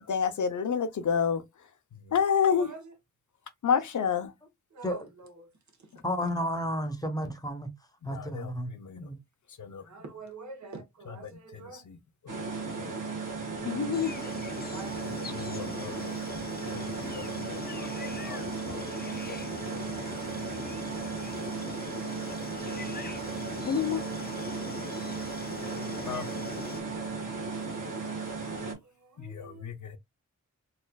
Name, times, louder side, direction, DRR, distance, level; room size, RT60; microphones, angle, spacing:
voice 1, 0.0-1.4 2.1-2.7 3.6-4.3 8.0-9.1 9.6-9.8 11.5-12.0 12.2-12.5 12.8-12.9 13.6-14.1 15.0-15.1 15.4-16.2 16.7-18.9 19.3-20.2 23.7-24.1 26.0-26.3 28.0-28.2 28.5-28.6 29.2-30.0, left 7 dB, 70° left, 0.6 m, -31 dB
voice 2, 2.4-2.9 4.7-5.5 5.8-5.9 9.8-11.9 14.7-15.4 28.5-29.7, right 4 dB, 65° right, 1.1 m, -47 dB
voice 3, 6.0-7.7 8.0-9.2, equal, 10° left, 0.9 m, -32 dB
sound 1, 12.3-28.7, right 4 dB, 90° right, 1.4 m, -36 dB
sound 2, 13.9-26.8, left 4 dB, 30° left, 0.5 m, -43 dB
4.1 x 2.5 x 2.2 m
wide cardioid pair, 90°, 31 cm